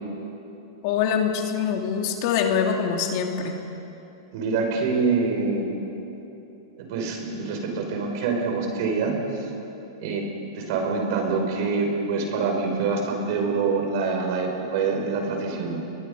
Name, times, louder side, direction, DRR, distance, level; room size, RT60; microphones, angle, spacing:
voice 1, 0.8-3.6, left 7 dB, 50° left, 3 dB, 2.6 m, -24 dB
voice 2, 4.3-5.7 6.8-9.5 10.0-10.3 10.6-15.8, right 4 dB, 55° right, 2 dB, 5.5 m, -25 dB
29.5 x 22.0 x 5.4 m, 2.9 s
supercardioid pair, 145°, 2 cm